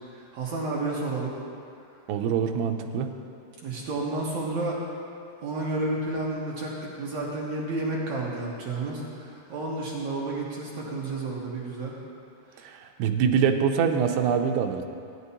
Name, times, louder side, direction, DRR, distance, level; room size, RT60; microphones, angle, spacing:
voice 1, 0.0-1.3 3.6-4.8 5.4-12.0 12.5-12.8, right 2 dB, 60° right, -5 dB, 2.1 m, -31 dB
voice 2, 2.1-3.1 13.0-14.8, right 7 dB, 85° right, 4 dB, 2.8 m, -24 dB
17.5 x 10.5 x 2.8 m, 2.4 s
omnidirectional pair, 4.7 m